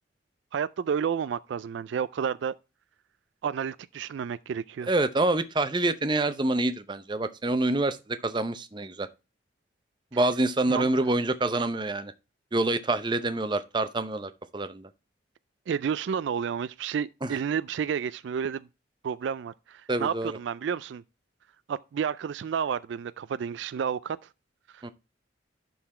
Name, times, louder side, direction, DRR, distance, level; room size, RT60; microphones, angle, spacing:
voice 1, 0.5-2.5 3.4-4.9 10.7-10.9 15.7-18.7 19.0-21.0 21.7-24.2 24.7-24.8, right 7 dB, 65° right, 0.3 m, -31 dB
voice 2, 4.9-9.1 10.1-12.1 12.5-14.9 17.2-17.3 19.9-20.4 24.8-24.9, right 2 dB, 25° right, 0.6 m, -27 dB
11.5 x 4.0 x 4.2 m
head